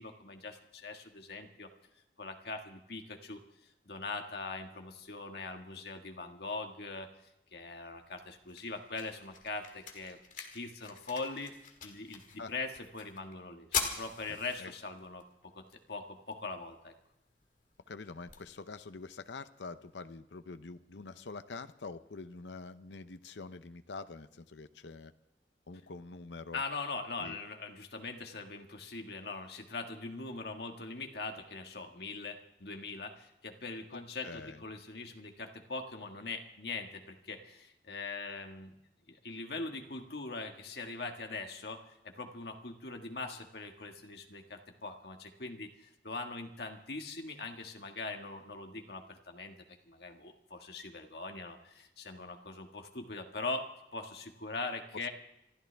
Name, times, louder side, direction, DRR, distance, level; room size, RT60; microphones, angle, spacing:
voice 1, 0.0-1.7 2.2-3.4 3.8-7.1 7.5-11.5 11.8-16.9 26.5-38.7 39.1-49.6 49.9-55.1, left 3 dB, 65° left, 3 dB, 1.7 m, -42 dB
sound 1, 7.9-19.9, left 6 dB, 50° left, 1.9 m, -44 dB
voice 2, 14.3-14.7 17.9-25.1 25.7-26.6 27.2-27.4 33.9-34.6 54.9-55.1, left 4 dB, 90° left, 12 dB, 0.7 m, -46 dB
26.5 x 13.0 x 3.4 m, 0.83 s
head